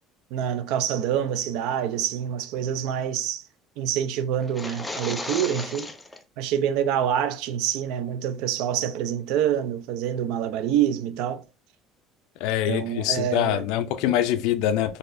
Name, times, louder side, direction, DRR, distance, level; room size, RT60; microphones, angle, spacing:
voice 1, 0.3-3.4 3.8-5.9 6.4-11.4 12.7-13.7, right 9 dB, 70° right, 0.5 m, -26 dB
sound 1, 4.4-6.2, left 2 dB, 5° left, 0.4 m, -34 dB
voice 2, 12.4-15.0, left 11 dB, 70° left, 0.5 m, -24 dB
4.0 x 2.7 x 2.5 m
cardioid pair, 165°, 0 cm